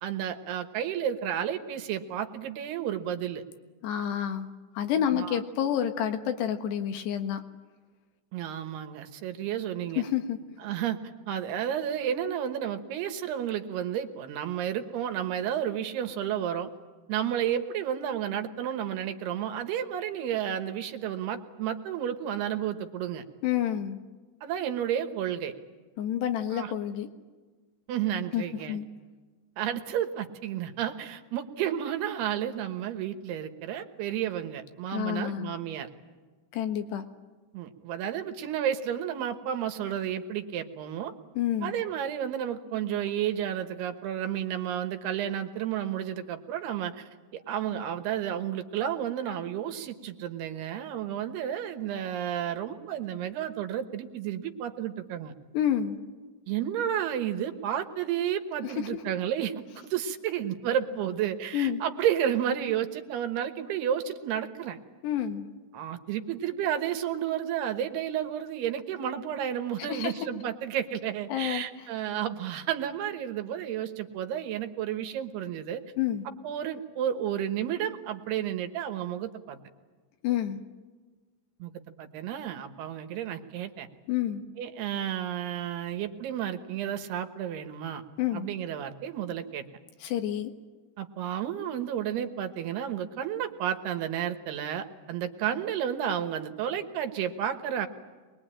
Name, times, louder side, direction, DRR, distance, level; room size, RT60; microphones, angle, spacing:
voice 1, 0.0-3.4 4.8-5.4 8.3-10.0 10.6-11.0 11.3-16.7 17.1-23.2 24.4-25.5 26.5-26.7 27.9-28.8 29.6-35.9 37.5-41.1 41.6-55.3 56.5-64.8 65.7-75.8 76.4-79.6 81.6-83.9 84.6-88.0 88.3-89.7 91.0-97.9, right 10 dB, 75° right, 7 dB, 3.2 m, -31 dB
voice 2, 3.8-7.4 10.0-10.4 23.4-24.0 26.0-27.1 28.3-28.9 34.9-35.5 36.5-37.1 41.4-41.7 55.5-56.0 58.6-59.0 61.5-61.8 65.0-65.5 69.9-70.1 71.3-71.7 76.0-76.3 80.2-80.6 84.1-84.4 88.2-88.5 90.0-90.5, left 10 dB, 85° left, 6 dB, 3.6 m, -29 dB
24.5 x 21.5 x 8.9 m, 1.4 s
omnidirectional pair, 4.8 m